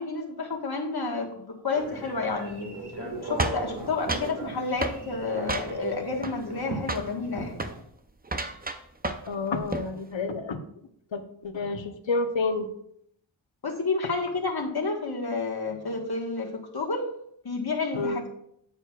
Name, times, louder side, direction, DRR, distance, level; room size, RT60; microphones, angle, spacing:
voice 1, 0.0-2.8 3.2-7.6 13.6-17.1 17.4-18.2, left 3 dB, 55° left, 1 dB, 1.5 m, -30 dB
Telephone, 1.7-7.8, right 1 dB, 60° right, 1.9 m, -37 dB
sound 1, 3.4-4.4 4.8-5.0 5.5-5.9 6.2-6.6 6.9-7.1 7.5-7.8 8.2-9.3 9.6-9.9, right 2 dB, 20° right, 0.6 m, -31 dB
voice 2, 9.3-10.6 11.1-12.7 17.9-18.2, left 3 dB, 75° left, 8 dB, 0.9 m, -29 dB
9.1 x 8.6 x 2.4 m, 0.70 s
wide cardioid pair, 75°, 45 cm